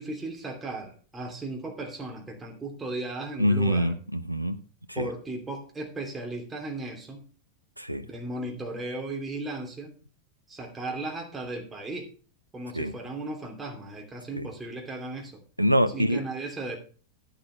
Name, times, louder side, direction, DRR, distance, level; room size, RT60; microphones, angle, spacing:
voice 1, 0.0-3.9 4.9-7.2 8.0-9.9 10.5-12.1 12.5-15.4 15.9-16.8, right 2 dB, 15° right, 2.8 m, -36 dB
voice 2, 3.4-4.6 4.9-5.1 7.8-8.1 12.7-12.9 14.4-14.5 15.6-16.2, equal, 90° right, 0.8 m, -25 dB
11.0 x 10.5 x 3.2 m
figure-of-eight pair, 90°, 0 cm